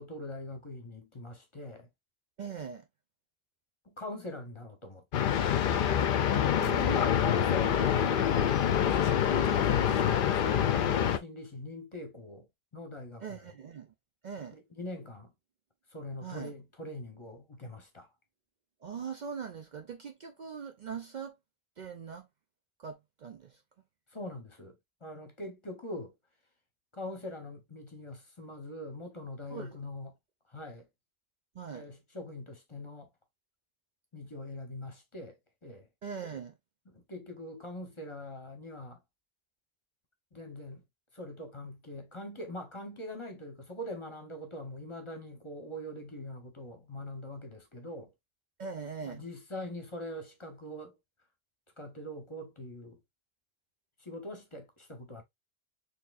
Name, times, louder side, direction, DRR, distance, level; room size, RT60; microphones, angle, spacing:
voice 1, 0.0-1.9 3.9-5.3 6.4-12.5 12.7-13.4 14.5-15.3 15.9-18.1 24.1-24.8 25.0-26.1 26.9-30.1 30.5-30.8 31.7-33.1 34.1-35.3 35.6-35.9 36.9-39.0 40.3-40.8 41.1-48.1 49.0-50.9 51.8-53.0 54.0-55.2, left 1 dB, 30° left, 0.9 m, -43 dB
voice 2, 2.4-2.9 6.2-7.2 13.2-13.9 14.2-14.6 16.2-16.5 18.8-21.3 21.8-22.3 22.8-23.6 29.5-29.8 31.6-31.9 36.0-36.6 48.6-49.2, right 6 dB, 55° right, 0.6 m, -41 dB
sound 1, 5.1-11.2, left 9 dB, 60° left, 0.7 m, -26 dB
4.4 x 3.3 x 2.4 m
omnidirectional pair, 1.0 m